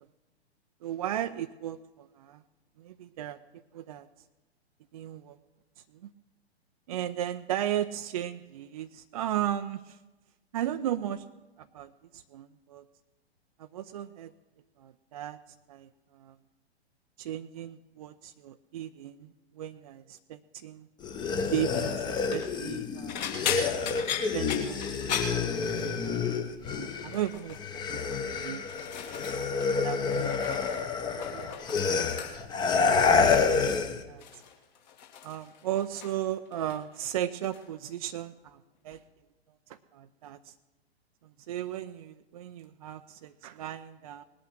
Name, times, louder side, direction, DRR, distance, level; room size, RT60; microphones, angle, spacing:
voice 1, 0.8-2.4 2.8-3.4 3.7-4.1 4.9-5.4 6.0-6.1 6.9-10.0 10.5-11.2 11.7-12.8 13.6-14.3 14.8-15.4 15.7-16.4 17.2-19.3 19.6-20.9 21.5-23.3 24.3-25.5 26.0-26.3 26.7-28.0 28.3-28.6 29.7-31.8 32.7-33.4 33.9-34.2 35.2-38.6 38.8-39.0 39.7-40.5 41.5-44.2, right 11 dB, 35° right, 8 dB, 0.5 m, -36 dB
sound 1, 21.0-27.2 27.5-34.0, left 5 dB, 15° left, 0.9 m, -28 dB
sound 2, 22.1-22.5 23.1-26.1 26.4-26.7 27.1-27.6 28.3-29.7 30.0-30.8 31.1-32.6 33.5-33.8 34.2-36.3 36.5-37.1 37.4-37.6 38.9-39.0, left 8 dB, 40° left, 2.3 m, -37 dB
19.0 x 8.6 x 7.5 m, 1.1 s
figure-of-eight pair, 115°, 33 cm